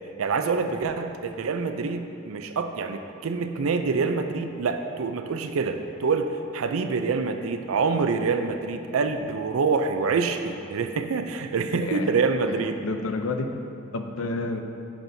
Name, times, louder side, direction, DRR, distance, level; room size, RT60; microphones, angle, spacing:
voice 1, 0.2-12.8, right 4 dB, 85° right, 7 dB, 0.5 m, -26 dB
voice 2, 11.7-12.1 12.5-13.5 13.9-14.6, left 3 dB, 75° left, 6 dB, 0.6 m, -30 dB
10.0 x 6.0 x 2.7 m, 2.6 s
head